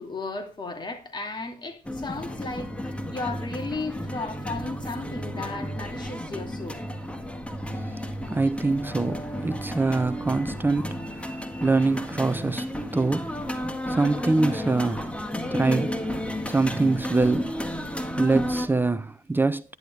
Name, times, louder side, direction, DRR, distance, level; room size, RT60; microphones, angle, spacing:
voice 1, 0.0-6.8, left 3 dB, 30° left, 2.8 m, -35 dB
sound 1, 1.8-18.7, equal, 10° left, 1.8 m, -32 dB
voice 2, 8.3-13.3 13.9-15.2 15.5-17.7 18.2-19.6, right 3 dB, 15° right, 0.6 m, -25 dB
11.0 x 10.5 x 3.4 m
cardioid pair, 85°, 15 cm